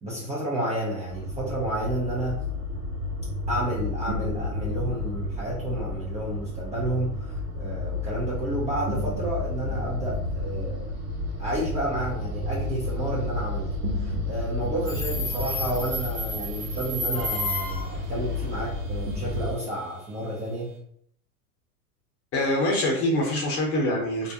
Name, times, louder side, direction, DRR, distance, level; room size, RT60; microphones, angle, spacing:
voice 1, 0.0-2.4 3.5-10.8 11.4-13.7 13.9-20.7, right 1 dB, 15° right, -7 dB, 0.6 m, -31 dB
sound 1, 1.1-19.5, left 2 dB, 85° right, 0.8 m, -31 dB
Subway metro underground, 14.9-18.0, left 1 dB, 65° right, 1.1 m, -32 dB
voice 2, 22.3-24.3, left 1 dB, 30° left, -2 dB, 0.9 m, -24 dB
2.5 x 2.0 x 2.7 m, 0.66 s
hypercardioid pair, 100°, 45 cm